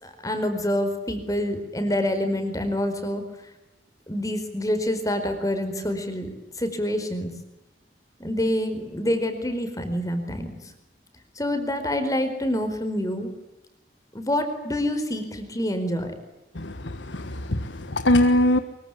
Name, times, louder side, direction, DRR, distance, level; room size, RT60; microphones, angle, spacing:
voice 1, 0.0-3.2 4.1-6.3 6.6-7.3 8.2-10.6 11.4-13.3 14.1-16.1, left 1 dB, 20° left, 7 dB, 4.7 m, -26 dB
voice 2, 16.5-18.6, left 1 dB, 75° left, 9 dB, 1.5 m, -22 dB
24.5 x 23.5 x 10.0 m, 0.92 s
head